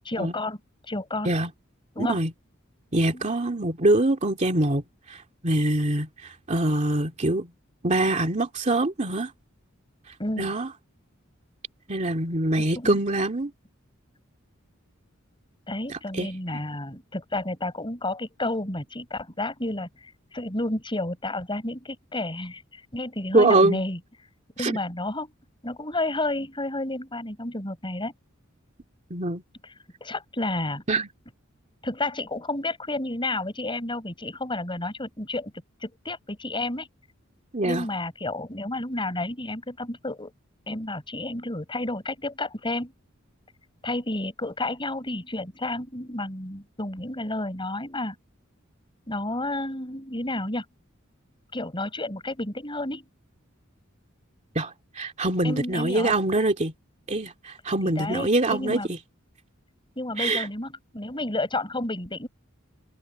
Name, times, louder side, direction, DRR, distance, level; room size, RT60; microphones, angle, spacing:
voice 1, 0.0-0.6 0.9-1.3 1.9-2.2 3.1-3.3 10.2-10.5 12.7-13.0 15.7-24.0 24.6-25.3 25.6-28.1 30.0-30.8 31.8-35.5 35.8-36.9 37.6-40.3 40.7-42.9 43.8-48.1 49.1-50.6 51.5-53.0 55.4-56.1 57.8-58.9 60.0-62.3, left 2 dB, 25° left, 6.5 m, -31 dB
voice 2, 2.0-2.3 2.9-7.5 7.8-9.3 10.4-10.7 11.9-13.5 15.9-16.3 23.3-23.8 24.6-24.8 29.1-29.4 30.9-31.1 37.5-37.9 54.6-56.7 57.1-59.0 60.2-60.5, right 2 dB, 35° right, 2.4 m, -24 dB
head